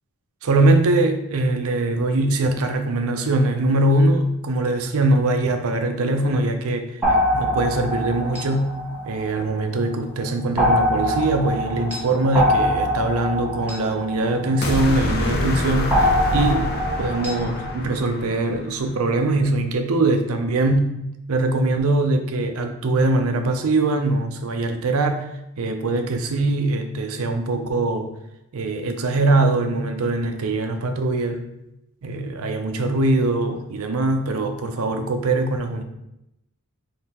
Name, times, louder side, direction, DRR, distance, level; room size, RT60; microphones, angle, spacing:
voice 1, 0.4-6.9 7.3-8.8 9.0-16.7 17.0-20.9 21.3-25.2 25.6-28.1 28.5-31.4 32.0-35.8, right 2 dB, 80° right, 6 dB, 0.5 m, -22 dB
sound 1, 7.0-9.8 10.6-15.1 15.9-17.7, equal, 10° right, 0.9 m, -24 dB
sound 2, 14.6-18.9, left 1 dB, 45° left, 0.5 m, -26 dB
3.6 x 2.8 x 4.2 m, 0.85 s
head